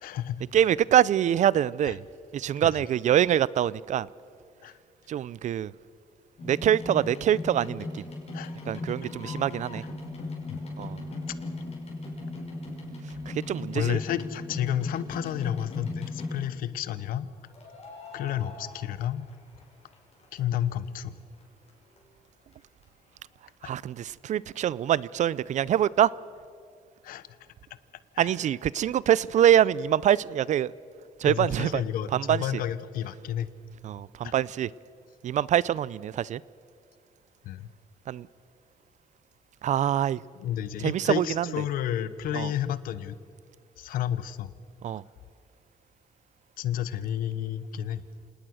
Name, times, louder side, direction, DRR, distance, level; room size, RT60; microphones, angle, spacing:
voice 1, 0.0-0.4 1.9-2.0 2.6-2.8 4.6-4.8 8.3-8.6 9.8-9.9 10.5-10.6 13.7-17.3 18.1-19.3 20.3-21.1 23.6-23.7 27.0-27.3 28.1-28.3 31.2-33.5 34.2-34.3 37.4-37.7 40.3-43.2 43.8-44.5 46.6-48.0, left 10 dB, 85° left, 1.0 m, -31 dB
voice 2, 0.5-2.0 2.3-4.1 5.1-5.7 6.4-8.1 8.7-9.8 10.8-11.0 13.3-14.0 23.6-26.1 28.2-30.7 31.2-31.8 32.1-32.4 33.8-34.7 35.2-36.4 38.1-38.3 39.6-40.2 40.8-41.5 42.3-42.5 44.8-45.0, right 10 dB, 55° right, 0.5 m, -24 dB
sound 1, 6.4-16.7 17.5-19.6 19.9-20.9 21.4-21.5 21.7-21.8 22.0-22.1 22.5-22.6 22.8-22.9, left 2 dB, 45° left, 6.0 m, -38 dB
27.0 x 19.0 x 6.4 m
cardioid pair, 110°, 14 cm